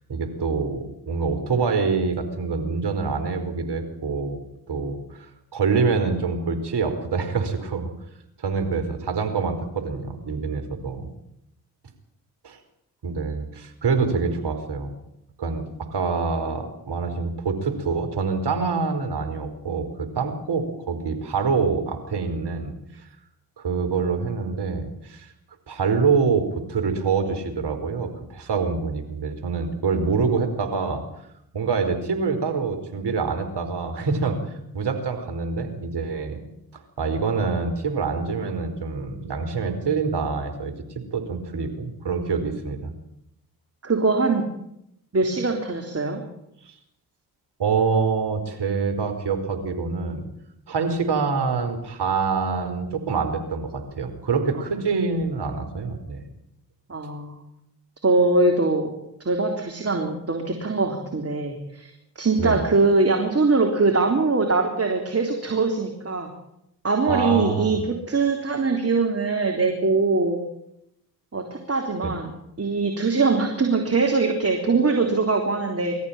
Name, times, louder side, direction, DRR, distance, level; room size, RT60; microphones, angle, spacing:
voice 1, 0.1-4.4 4.7-7.9 8.4-11.1 12.4-12.6 13.0-14.9 15.4-23.1 23.6-25.3 25.7-31.0 31.5-34.4 34.7-36.4 36.7-40.7 41.1-42.9 46.7-46.8 47.6-50.3 50.7-56.2 62.4-62.6 67.1-67.8 72.0-72.1, right 5 dB, 55° right, 6 dB, 4.9 m, -26 dB
voice 2, 43.8-44.5 45.1-46.2 56.9-57.4 58.0-58.9 59.3-61.9 62.2-66.3 66.8-70.4 71.3-72.3 72.6-76.0, right 3 dB, 30° right, 3 dB, 3.7 m, -22 dB
24.0 x 14.0 x 9.0 m, 0.79 s
hypercardioid pair, 45°, 47 cm